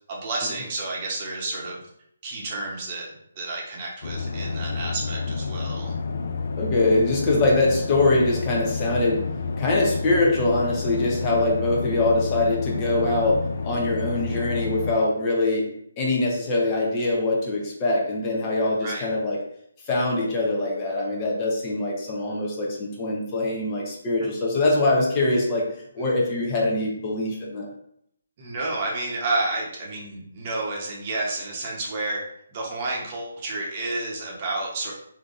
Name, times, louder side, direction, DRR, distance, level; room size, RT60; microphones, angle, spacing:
voice 1, 0.1-1.8 2.2-5.9 18.8-19.1 24.2-24.3 26.0-26.2 28.4-32.2 32.5-34.9, right 2 dB, 35° right, -2 dB, 0.9 m, -30 dB
sound 1, 4.0-15.0, left 4 dB, 60° left, 0.4 m, -30 dB
voice 2, 6.6-9.2 9.6-15.7 16.0-19.4 19.9-25.7 25.9-27.7, left 2 dB, 25° left, -2 dB, 0.7 m, -23 dB
3.6 x 2.7 x 2.5 m, 0.70 s
figure-of-eight pair, 155°, 0 cm